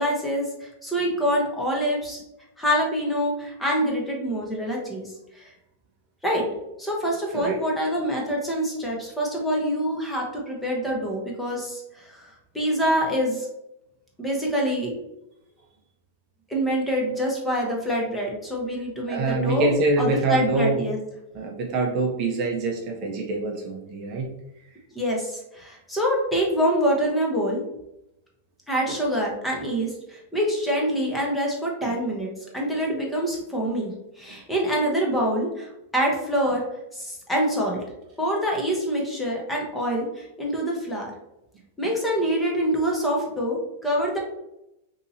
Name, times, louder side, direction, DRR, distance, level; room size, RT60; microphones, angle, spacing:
voice 1, 0.0-2.2 2.6-5.5 6.2-6.4 6.8-12.2 12.5-13.5 14.2-14.9 16.5-19.7 20.0-21.0 24.9-27.6 28.7-36.6 36.9-37.8 38.2-41.1 41.8-44.2, equal, 5° left, -2 dB, 0.7 m, -25 dB
voice 2, 19.1-20.8 21.3-24.3 28.9-29.0 31.8-32.0 32.7-32.8, right 2 dB, 35° right, 1 dB, 0.5 m, -25 dB
2.7 x 2.7 x 4.0 m, 0.87 s
supercardioid pair, 160°, 0 cm